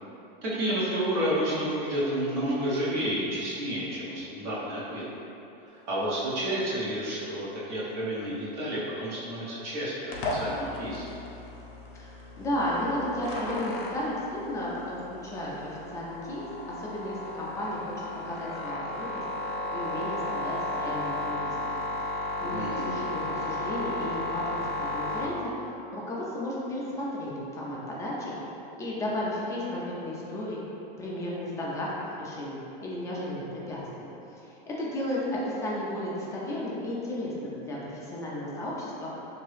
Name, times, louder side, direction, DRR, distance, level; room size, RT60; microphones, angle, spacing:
voice 1, 0.4-5.0 5.9-11.1 22.5-22.9, right 1 dB, 50° right, -8 dB, 1.1 m, -30 dB
sound 1, 10.1-25.2, left 2 dB, 55° left, 0.7 m, -34 dB
voice 2, 11.9-17.9 18.3-19.2 19.7-21.8 22.1-28.3 28.8-30.6 31.0-32.6 32.8-33.8 34.7-39.1, left 1 dB, 10° left, -6 dB, 0.4 m, -34 dB
2.9 x 2.7 x 3.2 m, 2.9 s
supercardioid pair, 135°, 29 cm